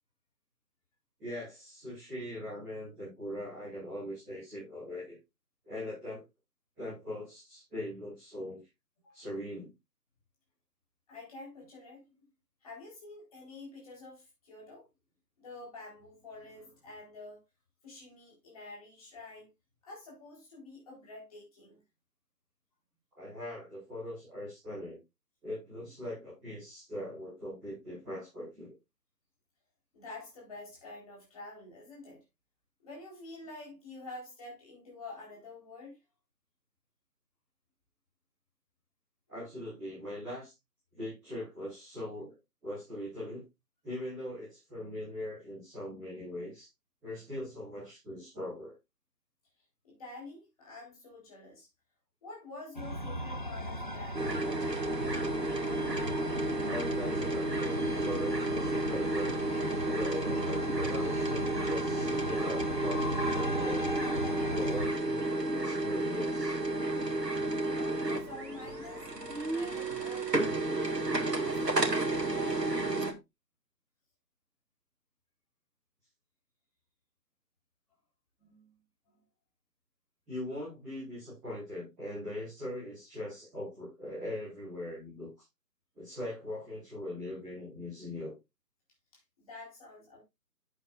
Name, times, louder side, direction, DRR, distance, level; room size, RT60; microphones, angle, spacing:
voice 1, 1.2-5.2 5.6-6.2 6.7-8.6 9.1-9.7 23.1-25.0 25.4-28.7 39.3-40.5 40.9-42.3 42.6-43.4 43.8-46.7 47.0-48.7 56.6-59.3 59.8-63.9 64.3-65.2 65.5-66.6 80.3-85.3 85.9-88.3, left 1 dB, ahead, 1.2 m, -40 dB
voice 2, 11.1-12.3 12.6-14.9 15.4-17.4 17.8-19.5 19.8-21.8 29.9-32.2 32.8-36.0 49.8-51.7 52.2-54.4 67.6-69.1 69.5-72.8 78.4-78.8 79.1-79.2 89.1-90.2, left 2 dB, 20° left, 4.1 m, -48 dB
sound 1, 52.8-64.9, equal, 30° right, 0.6 m, -37 dB
sound 2, 54.1-73.1, right 2 dB, 75° right, 2.2 m, -32 dB
11.0 x 8.1 x 2.5 m
figure-of-eight pair, 155°, 50 cm